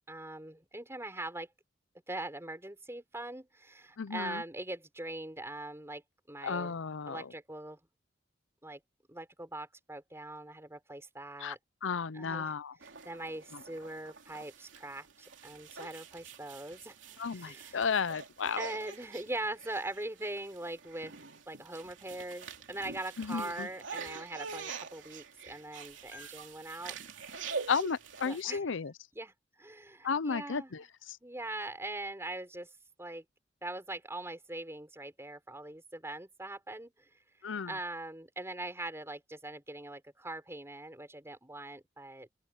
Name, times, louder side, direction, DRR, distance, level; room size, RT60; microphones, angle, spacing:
voice 1, 0.1-1.5 2.1-6.0 6.3-6.8 7.1-7.8 8.6-8.8 9.1-11.6 12.1-12.5 13.0-17.8 18.6-21.1 21.5-27.0 28.2-28.6 29.2-30.8 31.2-32.7 33.0-33.2 33.6-37.1 37.7-42.3, right 2 dB, 15° right, 5.4 m, -42 dB
voice 2, 4.0-4.4 6.4-7.3 11.4-11.6 11.8-12.7 17.2-18.7 23.2-23.7 27.7-28.9 30.0-31.2 37.4-37.8, left 5 dB, 85° left, 0.6 m, -33 dB
sound 1, 12.8-28.4, right 5 dB, 85° right, 2.9 m, -46 dB
open air
head